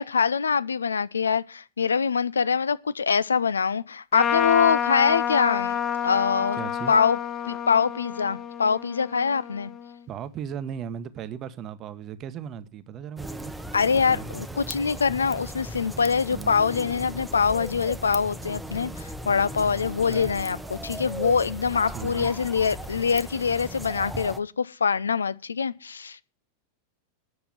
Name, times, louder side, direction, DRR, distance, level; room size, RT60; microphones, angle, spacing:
voice 1, 0.0-5.8 6.0-6.6 6.9-7.2 7.5-9.7 13.7-26.2, left 6 dB, 75° left, 0.5 m, -24 dB
Trumpet, 4.1-9.9, left 9 dB, 30° left, 1.1 m, -29 dB
voice 2, 6.6-6.9 10.1-13.5 13.9-14.5 16.3-16.6 20.0-20.3 21.9-22.3, right 8 dB, 30° right, 1.0 m, -37 dB
sound 1, 13.2-24.4, right 1 dB, 5° right, 0.9 m, -37 dB
9.5 x 6.8 x 8.9 m
figure-of-eight pair, 90°, 0 cm